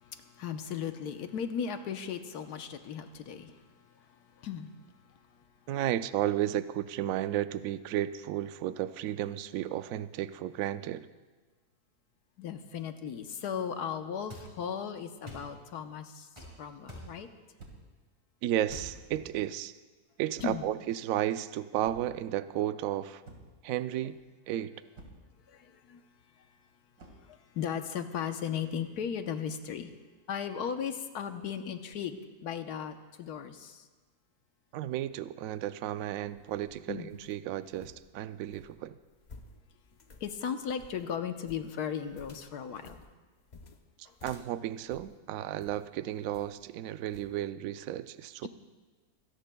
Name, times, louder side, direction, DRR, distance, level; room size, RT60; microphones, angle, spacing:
voice 1, 0.0-3.6 4.4-4.7 12.4-16.3 16.6-17.3 20.4-20.6 25.5-26.0 27.3-29.9 30.3-33.8 36.9-37.1 40.2-43.0 48.4-48.5, left 7 dB, 80° left, 7 dB, 1.4 m, -36 dB
voice 2, 5.7-11.1 18.4-19.7 20.2-23.2 23.6-24.2 24.5-24.7 34.7-39.0 44.0-48.5, right 12 dB, 70° right, 13 dB, 0.9 m, -33 dB
sound 1, 14.3-14.5 15.3-15.5 16.4-16.5 16.9-17.1 18.7-18.9, right 1 dB, 20° right, 6.0 m, -44 dB
sound 2, 17.6-18.0 19.1-19.4 20.4-20.8 21.8-22.3 23.2-23.7 25.0-25.3 27.0-27.3, right 2 dB, 90° right, 2.6 m, -51 dB
sound 3, 36.2-45.9 46.3-46.7 47.1-47.4, left 3 dB, 35° left, 0.8 m, -55 dB
25.0 x 17.5 x 2.3 m, 1.3 s
omnidirectional pair, 1.6 m